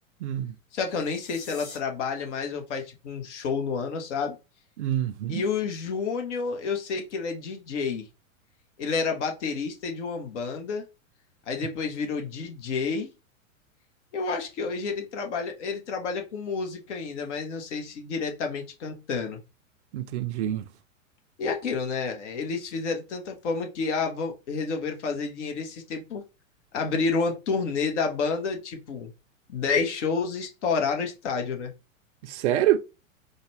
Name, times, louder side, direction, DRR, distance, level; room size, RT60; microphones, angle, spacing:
voice 1, 0.2-0.6 4.8-5.4 19.9-20.7 32.2-32.8, right 12 dB, 55° right, 0.5 m, -26 dB
voice 2, 0.7-4.4 5.3-8.1 8.8-10.8 11.5-13.1 14.1-19.4 21.4-26.2 26.7-29.1 29.5-31.7, left 5 dB, 60° left, 1.0 m, -29 dB
sound 1, 0.8-1.8, left 3 dB, 75° left, 1.8 m, -45 dB
4.0 x 2.1 x 3.3 m
figure-of-eight pair, 95°, 41 cm